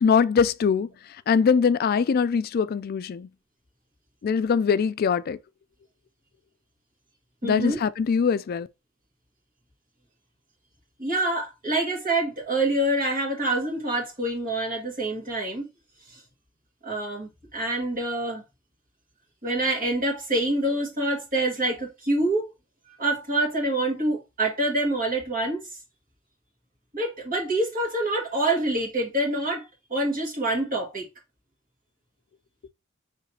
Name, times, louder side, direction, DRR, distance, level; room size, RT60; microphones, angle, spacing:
voice 1, 0.0-0.9 1.3-3.3 4.2-5.4 7.4-8.7, left 6 dB, 50° left, 0.3 m, -22 dB
voice 2, 7.4-7.8 11.0-15.7 16.1-16.2 16.8-18.4 19.4-22.5 23.0-25.6 26.9-29.7 29.9-31.1, right 1 dB, 45° right, 1.8 m, -26 dB
5.7 x 3.3 x 2.8 m
head